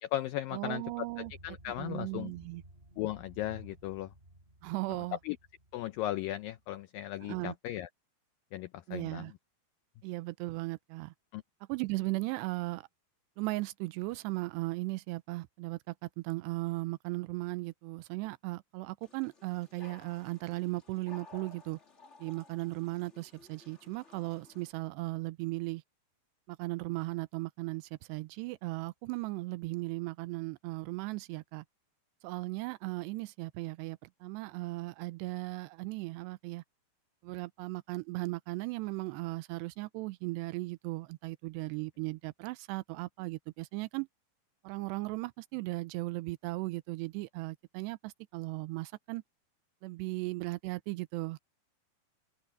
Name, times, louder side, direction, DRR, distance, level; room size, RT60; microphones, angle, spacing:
voice 1, 0.0-2.3 3.0-4.1 5.2-5.4 5.7-7.9 8.5-9.3 11.3-11.4, left 14 dB, 85° left, 2.0 m, -37 dB
voice 2, 0.5-1.3 1.8-2.6 4.6-5.2 7.2-7.6 8.9-9.3 10.0-11.1 11.7-12.9 13.4-21.8 22.2-25.8 26.5-31.6 32.2-36.6 37.2-44.1 44.6-49.2 49.8-51.4, right 22 dB, 90° right, 2.8 m, -37 dB
sound 1, 0.8-6.8, right 1 dB, 15° right, 6.7 m, -56 dB
sound 2, 19.0-24.7, left 4 dB, 35° left, 1.1 m, -56 dB
omnidirectional pair, 4.8 m